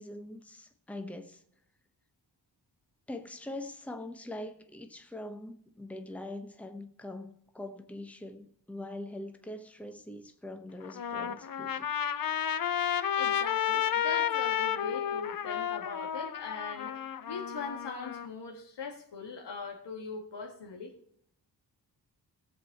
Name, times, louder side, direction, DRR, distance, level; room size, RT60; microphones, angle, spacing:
voice 1, 0.0-1.4 3.1-11.9, left 1 dB, 5° left, 1.0 m, -43 dB
Trumpet, 10.8-18.3, left 9 dB, 55° left, 0.7 m, -32 dB
voice 2, 13.2-20.9, left 4 dB, 80° left, 2.4 m, -41 dB
17.5 x 7.6 x 4.2 m
wide cardioid pair, 100°, 41 cm